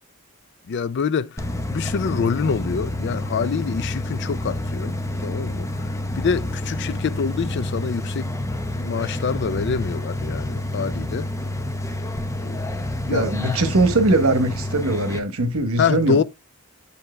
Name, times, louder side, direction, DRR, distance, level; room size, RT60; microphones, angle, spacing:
voice 1, 0.7-1.4 1.7-5.0 5.2-5.7 6.2-8.3 8.8-11.3 12.4-12.6 13.1-13.6 15.8-16.2, left 6 dB, 55° left, 0.4 m, -25 dB
sound 1, 1.4-15.2, left 1 dB, 15° left, 0.7 m, -28 dB
voice 2, 13.1-16.2, right 2 dB, 75° right, 1.1 m, -21 dB
7.1 x 4.5 x 3.2 m
head